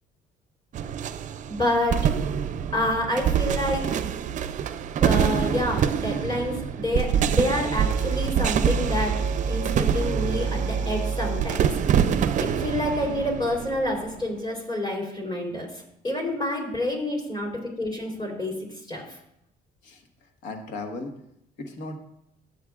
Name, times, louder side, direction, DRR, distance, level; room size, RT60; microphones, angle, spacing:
sound 1, 0.7-14.3, right 8 dB, 50° right, 0.5 m, -25 dB
voice 1, 1.5-2.1 2.7-3.9 5.0-19.2, left 1 dB, 25° left, 0 dB, 3.5 m, -28 dB
voice 2, 19.8-21.1 21.6-22.0, left 2 dB, 85° left, 4 dB, 1.4 m, -37 dB
14.0 x 7.8 x 2.4 m, 0.80 s
cardioid pair, 110°, 17 cm